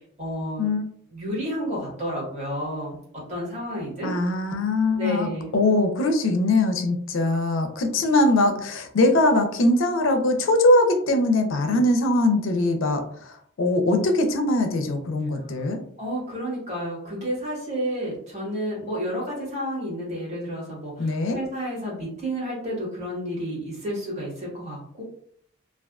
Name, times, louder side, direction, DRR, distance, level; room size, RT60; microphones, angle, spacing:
voice 1, 0.2-0.7 1.1-2.9 3.3-4.1 4.9-5.5 15.5-15.7 16.0-25.0, equal, 35° right, -5 dB, 1.1 m, -31 dB
voice 2, 4.0-15.8 21.0-21.4, left 2 dB, 70° left, 5 dB, 0.4 m, -22 dB
2.3 x 2.3 x 2.3 m, 0.63 s
head